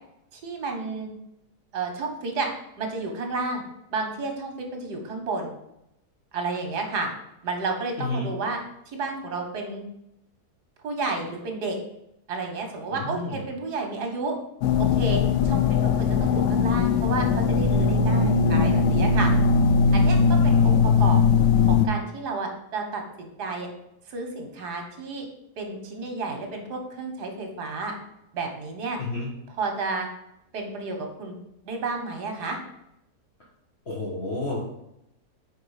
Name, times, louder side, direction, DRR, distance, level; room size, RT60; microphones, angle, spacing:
voice 1, 0.3-1.1 1.7-2.5 2.8-3.6 3.9-5.5 6.3-7.1 7.4-9.8 10.8-11.8 12.3-14.4 15.0-19.3 19.9-20.2 20.4-21.2 21.7-23.7 24.1-25.2 25.6-27.9 28.3-29.0 29.6-30.1 30.5-31.4 31.6-32.6, right 3 dB, 85° right, 3 dB, 1.7 m, -31 dB
voice 2, 8.0-8.3 12.9-13.4 20.4-21.1 29.0-29.3 33.9-34.6, left 2 dB, 45° left, -4 dB, 1.3 m, -31 dB
sound 1, 14.6-21.9, left 5 dB, 80° left, 1.1 m, -20 dB
4.8 x 4.8 x 4.8 m, 0.81 s
omnidirectional pair, 1.7 m